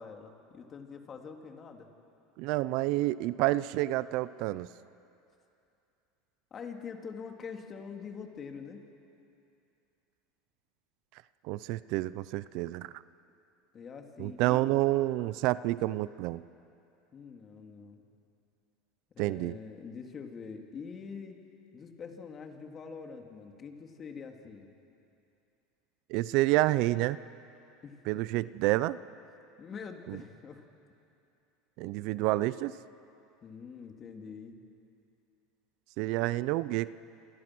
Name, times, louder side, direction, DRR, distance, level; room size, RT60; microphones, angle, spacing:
voice 1, 0.0-1.9 6.5-8.8 13.7-14.7 17.1-18.0 19.1-21.4 21.7-24.7 27.8-28.0 29.6-30.6 33.4-34.6, left 5 dB, 35° left, 3 dB, 2.9 m, -44 dB
voice 2, 2.4-4.7 11.4-12.9 14.2-16.4 19.2-19.6 26.1-27.2 28.1-29.0 30.1-30.2 31.8-32.7 36.0-36.9, right 17 dB, 65° right, 17 dB, 0.6 m, -29 dB
28.5 x 27.0 x 6.2 m, 2.7 s
supercardioid pair, 110°, 0 cm